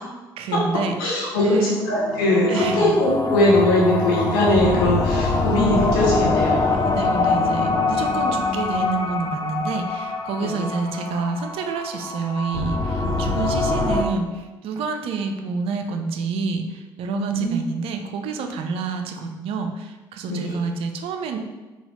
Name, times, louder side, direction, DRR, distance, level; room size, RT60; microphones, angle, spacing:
voice 1, 0.4-0.9 1.4-1.8 2.5-2.9 6.7-21.4, right 4 dB, 55° right, 5 dB, 0.4 m, -28 dB
voice 2, 1.0-6.8 10.4-10.6 13.0-13.1 17.2-17.6 20.3-20.6, left 1 dB, 75° left, -4 dB, 0.6 m, -20 dB
sound 1, 1.8-14.0, left 3 dB, 35° left, 0.4 m, -24 dB
4.0 x 2.3 x 2.9 m, 1.2 s
figure-of-eight pair, 50°, 11 cm